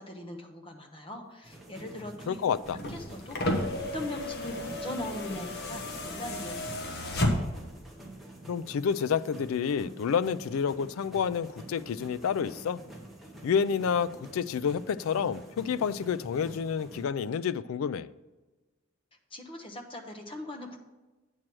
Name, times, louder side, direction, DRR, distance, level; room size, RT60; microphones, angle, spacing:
voice 1, 0.0-2.4 2.7-7.2 19.3-20.8, left 1 dB, 25° left, 0.9 m, -41 dB
sound 1, 1.4-17.0, right 1 dB, ahead, 1.1 m, -48 dB
voice 2, 2.3-2.8 8.5-12.8 13.4-18.1, left 7 dB, 85° left, 0.3 m, -29 dB
sound 2, 2.6-7.8 9.0-9.1, left 1 dB, 50° left, 1.1 m, -32 dB
8.7 x 4.6 x 6.1 m
head